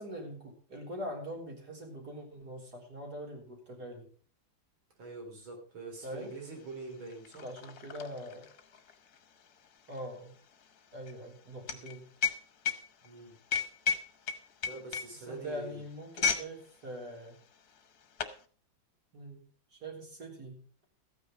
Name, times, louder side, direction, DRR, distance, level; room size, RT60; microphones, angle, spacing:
voice 1, 0.0-4.1 6.0-6.3 7.4-8.5 9.9-10.3 10.9-12.1 15.3-17.4 19.1-19.4 19.7-20.8, equal, 50° right, 0 dB, 4.2 m, -43 dB
voice 2, 5.0-7.5 13.0-13.4 14.6-15.8, right 3 dB, 85° right, 2 dB, 4.3 m, -44 dB
sound 1, 6.2-6.3 6.6-16.5 16.8-17.1 17.8-18.4, left 6 dB, 55° left, 1.5 m, -35 dB
14.0 x 9.3 x 5.1 m, 0.42 s
omnidirectional pair, 2.2 m